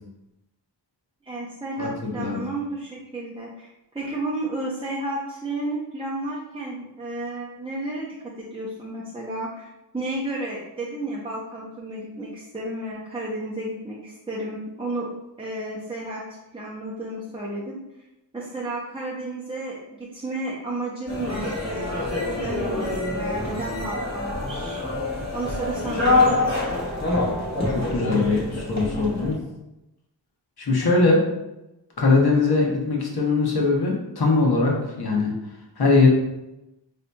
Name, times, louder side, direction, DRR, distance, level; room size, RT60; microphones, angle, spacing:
voice 1, 1.3-9.7 9.9-15.1 15.4-16.2 16.5-17.8 18.3-24.8 25.3-26.6, right 1 dB, 15° right, -6 dB, 0.6 m, -32 dB
voice 2, 1.8-2.4 27.7-29.4 30.6-31.2 32.0-35.3 35.8-36.1, left 3 dB, 60° left, -1 dB, 0.9 m, -21 dB
sound 1, 21.1-29.3, left 2 dB, 35° left, 1.1 m, -25 dB
4.2 x 2.7 x 2.2 m, 0.93 s
wide cardioid pair, 70°, 44 cm